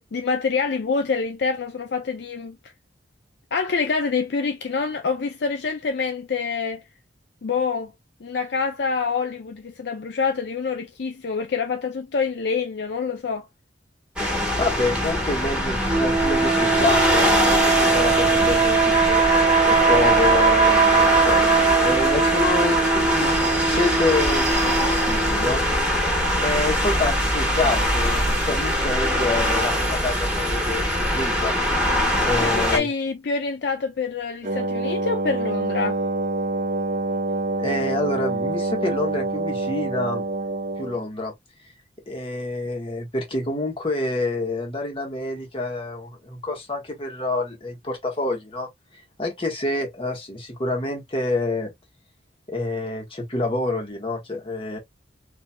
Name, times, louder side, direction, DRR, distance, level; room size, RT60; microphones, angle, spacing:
voice 1, 0.0-2.6 3.5-6.8 7.4-7.9 8.2-13.5 32.4-36.0, left 5 dB, 60° left, 0.5 m, -26 dB
sound 1, 14.2-32.8, equal, 5° right, 1.3 m, -22 dB
voice 2, 14.6-19.2 19.7-23.3 23.6-25.6 26.4-31.5 32.3-32.9 37.6-40.3 40.8-41.3 42.1-48.7 49.2-51.7 52.5-54.8, left 2 dB, 30° left, 1.4 m, -27 dB
sound 2, 15.9-25.6, right 5 dB, 25° right, 1.0 m, -21 dB
Wind instrument woodwind instrument, 34.4-41.0, right 2 dB, 45° right, 0.7 m, -26 dB
4.2 x 2.8 x 2.2 m
head